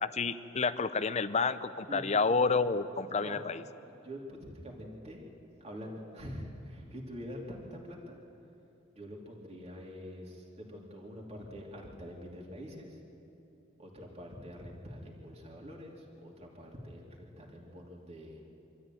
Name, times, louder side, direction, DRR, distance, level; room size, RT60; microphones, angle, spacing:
voice 1, 0.0-3.6, left 4 dB, 35° left, 13 dB, 0.6 m, -29 dB
voice 2, 3.9-5.2 5.6-8.2 8.9-13.0 13.8-18.4, equal, 30° right, -2 dB, 3.0 m, -45 dB
25.0 x 13.5 x 9.2 m, 2.9 s
head